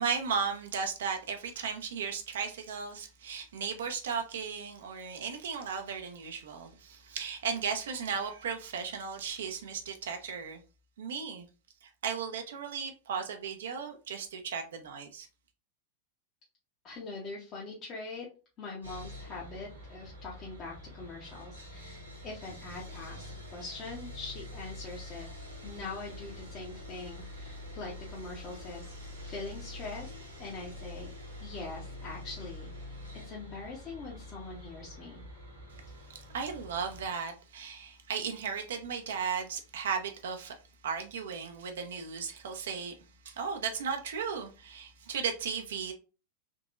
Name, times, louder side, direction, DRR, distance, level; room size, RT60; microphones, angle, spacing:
voice 1, 0.0-10.6 11.0-11.5 11.8-15.3 36.1-40.6 40.8-42.9 43.2-45.9, right 6 dB, 60° right, 0.5 m, -35 dB
voice 2, 16.8-18.3 18.6-25.3 25.6-28.9 29.2-30.1 30.4-31.1 31.4-33.0 33.2-35.2, left 3 dB, 30° left, 0.9 m, -43 dB
Sawing, 18.8-37.1, left 1 dB, 80° right, 1.6 m, -46 dB
3.7 x 2.8 x 2.4 m
figure-of-eight pair, 90°, 0 cm